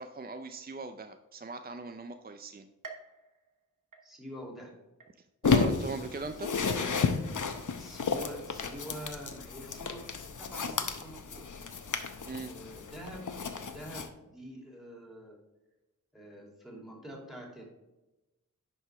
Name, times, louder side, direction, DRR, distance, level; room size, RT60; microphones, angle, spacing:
voice 1, 0.0-2.7 5.4-6.5 12.3-12.5, right 3 dB, 30° right, 8 dB, 0.4 m, -40 dB
sound 1, 2.8-4.5 5.0-5.6 6.1-6.2 7.2-7.3, right 4 dB, 70° right, 1.1 m, -51 dB
voice 2, 4.0-4.7 7.8-11.5 12.3-13.3 13.6-15.4 16.1-17.6, equal, ahead, -1 dB, 2.6 m, -46 dB
sound 2, 5.4-14.1, left 5 dB, 65° left, 0.8 m, -32 dB
10.5 x 4.8 x 3.4 m, 1.0 s
wide cardioid pair, 55°, 33 cm